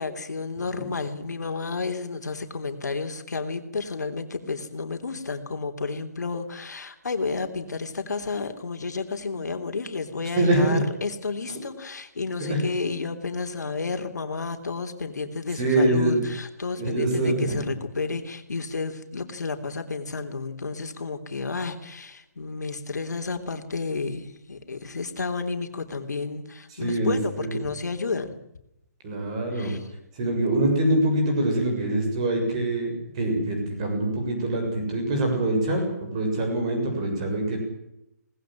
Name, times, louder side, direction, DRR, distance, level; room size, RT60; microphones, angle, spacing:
voice 1, 0.0-28.3 29.5-29.8, left 4 dB, 80° left, 6 dB, 3.4 m, -31 dB
voice 2, 10.4-10.8 12.4-12.6 15.6-16.2 16.8-17.7 26.7-27.5 29.0-29.7 30.1-37.6, right 1 dB, 20° right, 3 dB, 7.0 m, -24 dB
21.5 x 19.5 x 7.6 m, 0.82 s
hypercardioid pair, 180°, 9 cm